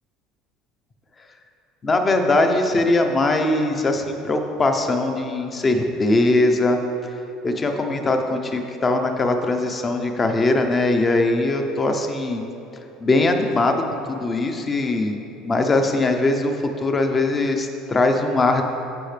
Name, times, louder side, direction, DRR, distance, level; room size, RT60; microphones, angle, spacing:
voice 1, 1.8-7.1 7.4-12.4 13.0-18.6, left 2 dB, 20° left, 5 dB, 0.7 m, -21 dB
14.5 x 5.7 x 3.3 m, 2.9 s
cardioid pair, 140°, 0 cm